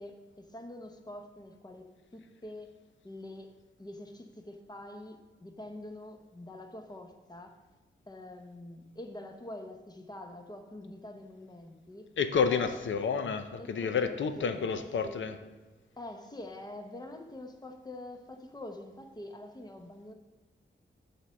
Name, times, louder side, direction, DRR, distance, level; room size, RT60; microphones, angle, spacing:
voice 1, 0.0-2.7 3.0-3.5 3.8-7.6 8.1-12.1 12.5-12.8 13.6-14.7 15.0-15.2 16.0-20.1, left 1 dB, 20° left, 5 dB, 0.8 m, -45 dB
voice 2, 12.2-15.4, left 6 dB, 75° left, 8 dB, 0.6 m, -30 dB
8.0 x 4.4 x 6.3 m, 1.3 s
wide cardioid pair, 125°, 20 cm